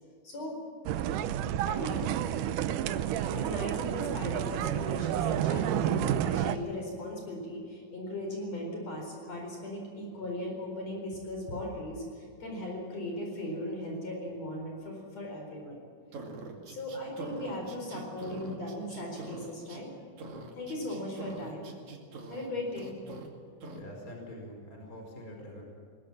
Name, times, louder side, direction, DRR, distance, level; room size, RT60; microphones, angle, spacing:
voice 1, 0.2-0.6 1.7-2.1 3.2-15.8 16.6-19.9 20.5-21.7 22.3-23.0, left 1 dB, 50° left, 0 dB, 5.5 m, -38 dB
sound 1, 0.9-6.6, right 11 dB, 80° right, 2.3 m, -30 dB
sound 2, 16.1-19.8 20.2-22.5 22.8-23.3 23.6-23.8, right 3 dB, 60° right, 3.7 m, -44 dB
voice 2, 23.7-25.6, left 1 dB, 25° left, 1 dB, 5.0 m, -45 dB
21.5 x 19.5 x 7.4 m, 2.3 s
omnidirectional pair, 3.8 m